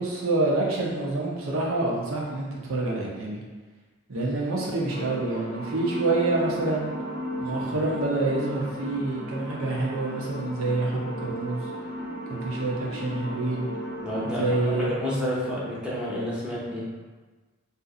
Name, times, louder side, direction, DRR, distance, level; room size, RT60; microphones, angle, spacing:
voice 1, 0.0-3.4 4.1-6.9 7.4-11.7 12.3-13.7 14.2-14.9, right 2 dB, 75° right, -3 dB, 0.8 m, -27 dB
sound 1, 4.9-14.9, equal, 20° left, 0.9 m, -35 dB
voice 2, 14.0-16.8, equal, 5° right, -8 dB, 0.8 m, -30 dB
2.7 x 2.5 x 3.8 m, 1.3 s
head